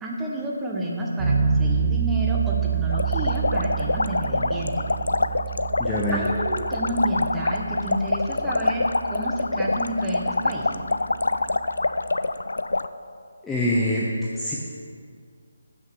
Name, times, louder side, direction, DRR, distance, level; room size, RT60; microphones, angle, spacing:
voice 1, 0.0-4.9 6.1-10.8, right 1 dB, 10° right, -3 dB, 1.2 m, -30 dB
sound 1, 1.2-12.1, right 7 dB, 40° right, 1.2 m, -29 dB
sound 2, 2.9-12.9, left 2 dB, 75° left, 0.3 m, -26 dB
voice 2, 5.8-6.2 13.4-14.1 14.3-14.5, left 1 dB, 5° left, -6 dB, 0.8 m, -24 dB
7.2 x 6.1 x 6.3 m, 2.2 s
figure-of-eight pair, 150°, 0 cm